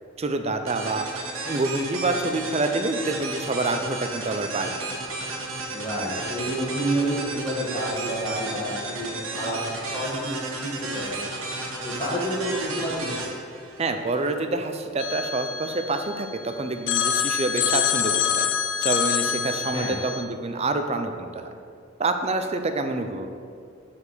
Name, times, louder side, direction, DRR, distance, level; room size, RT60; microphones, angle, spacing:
voice 1, 0.2-1.1 1.5-4.9 13.8-18.4 18.8-21.5 22.0-23.3, right 2 dB, 30° right, 7 dB, 0.5 m, -27 dB
sound 1, 0.7-14.3, right 2 dB, 80° right, 1.4 m, -33 dB
voice 2, 5.7-11.2 11.8-13.4 19.7-20.0, right 1 dB, 20° left, -6 dB, 1.8 m, -29 dB
Telephone, 15.0-16.4 16.9-20.2, left 8 dB, 55° left, 0.4 m, -26 dB
7.1 x 4.3 x 6.7 m, 2.3 s
head